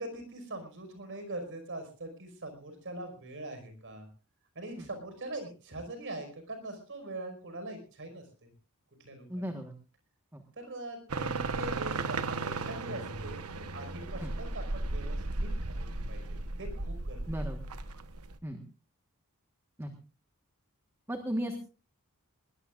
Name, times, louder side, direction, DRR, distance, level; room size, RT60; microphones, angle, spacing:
voice 1, 0.0-4.1 4.6-8.5 9.0-9.4 10.6-17.4, right 1 dB, 60° right, 7 dB, 5.4 m, -42 dB
voice 2, 9.3-9.7 10.3-10.4 14.2-14.3 17.3-17.7 18.4-18.6 19.8-19.9 21.1-21.6, equal, 10° right, 5 dB, 1.5 m, -35 dB
sound 1, 11.1-18.4, right 3 dB, 75° right, 1.2 m, -35 dB
21.0 x 20.0 x 2.5 m, 0.34 s
head